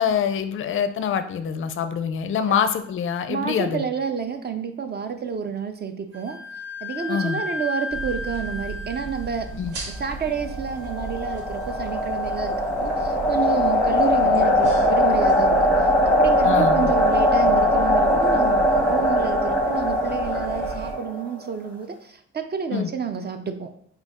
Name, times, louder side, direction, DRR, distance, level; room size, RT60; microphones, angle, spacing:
voice 1, 0.0-3.8 7.1-7.4 9.6-9.7 16.4-16.9 22.7-22.9, left 7 dB, 45° left, 10 dB, 0.4 m, -25 dB
voice 2, 3.3-6.4 6.8-9.5 10.0-23.7, right 6 dB, 35° right, 7 dB, 0.4 m, -29 dB
Wind instrument woodwind instrument, 6.1-13.6, left 2 dB, 55° right, 0.9 m, -36 dB
sound 1, 7.9-20.9, right 3 dB, 75° right, 1.2 m, -36 dB
sound 2, 10.5-21.4, left 1 dB, 5° left, 0.7 m, -20 dB
3.9 x 2.3 x 3.5 m, 0.64 s
cardioid pair, 90°, 30 cm